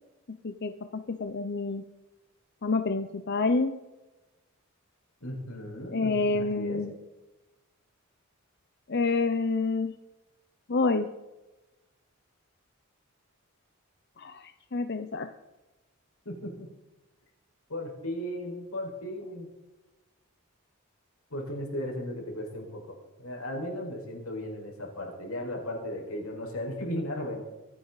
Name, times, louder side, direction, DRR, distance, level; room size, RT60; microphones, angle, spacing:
voice 1, 0.4-1.8 2.6-3.8 5.9-7.0 8.9-9.9 10.7-11.1 14.2-15.3, left 3 dB, 50° left, 8 dB, 0.7 m, -28 dB
voice 2, 5.2-6.8 16.3-16.7 17.7-19.5 21.3-27.4, left 1 dB, 85° left, 0 dB, 5.1 m, -36 dB
24.0 x 9.9 x 4.1 m, 1.1 s
head